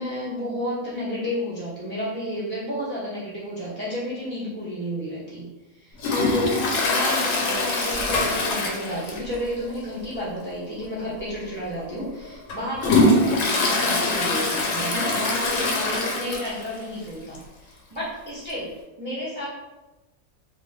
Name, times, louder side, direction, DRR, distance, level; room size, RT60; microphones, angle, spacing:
voice 1, 0.0-5.4 5.7-6.6 6.9-18.7 19.0-19.5, equal, 35° right, -9 dB, 0.5 m, -31 dB
Toilet flush, 6.0-9.4 9.7-9.8 10.2-10.3 11.2-11.3 11.8-16.8 17.1-17.2 17.3-17.4 18.5-18.6, left 2 dB, 75° left, 0.9 m, -23 dB
2.3 x 2.3 x 3.2 m, 1.1 s
omnidirectional pair, 1.4 m